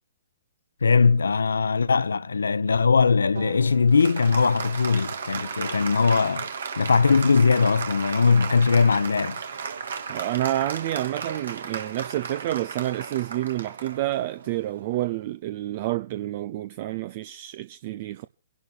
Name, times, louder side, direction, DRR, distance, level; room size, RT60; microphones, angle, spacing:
voice 1, 0.8-6.5 6.8-9.4, left 5 dB, 75° left, 0.9 m, -20 dB
Applause, 3.4-15.2, right 6 dB, 65° right, 2.4 m, -35 dB
voice 2, 10.1-18.3, right 15 dB, 45° right, 0.6 m, -29 dB
28.5 x 11.5 x 2.5 m
figure-of-eight pair, 120°, 0 cm